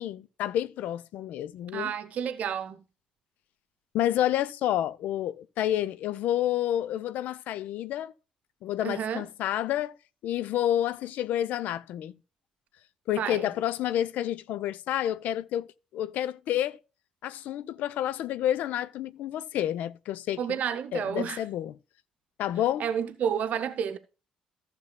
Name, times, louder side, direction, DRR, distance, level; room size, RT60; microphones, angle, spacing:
voice 1, 0.0-1.9 3.9-8.1 8.6-9.9 10.2-12.2 13.1-15.7 15.9-16.8 17.2-20.4 20.9-21.8 22.4-22.8, left 12 dB, 60° left, 0.5 m, -29 dB
voice 2, 1.7-2.8 8.8-9.3 13.2-13.5 20.4-21.4 22.8-24.0, right 8 dB, 50° right, 0.8 m, -30 dB
15.0 x 6.8 x 2.2 m
figure-of-eight pair, 45°, 3 cm